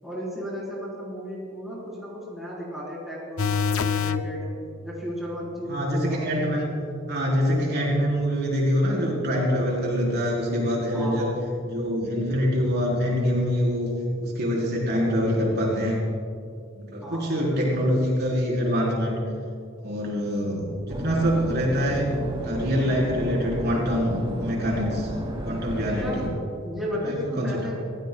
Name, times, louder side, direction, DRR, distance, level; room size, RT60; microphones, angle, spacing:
voice 1, 0.0-4.5 4.8-6.5 10.9-11.3 17.0-17.8 25.7-26.3 26.6-27.7, equal, ahead, -7 dB, 4.4 m, -34 dB
sound 1, 3.4-4.3 10.6-10.7, left 6 dB, 85° left, 0.6 m, -24 dB
voice 2, 5.7-6.7 7.1-11.3 11.7-13.9 14.2-16.0 16.7-19.2 19.8-22.1 22.4-25.1 25.4-26.3 27.0-27.7, equal, 55° right, -4 dB, 4.3 m, -25 dB
sound 2, 20.9-26.3, equal, 25° right, 2.5 m, -33 dB
26.5 x 15.5 x 2.4 m, 2.5 s
head